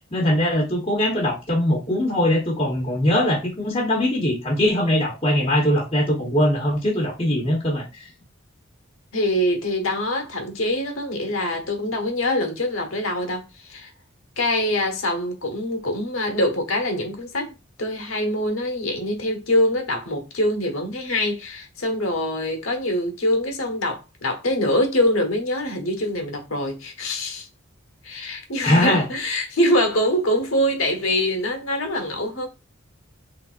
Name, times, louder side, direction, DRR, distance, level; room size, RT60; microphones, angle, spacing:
voice 1, 0.1-8.1 28.6-29.0, left 1 dB, 25° left, 1.0 m, -21 dB
voice 2, 9.1-13.9 14.4-17.5 17.8-27.5 28.0-32.5, left 1 dB, 80° left, 1.2 m, -24 dB
4.0 x 3.4 x 2.5 m
head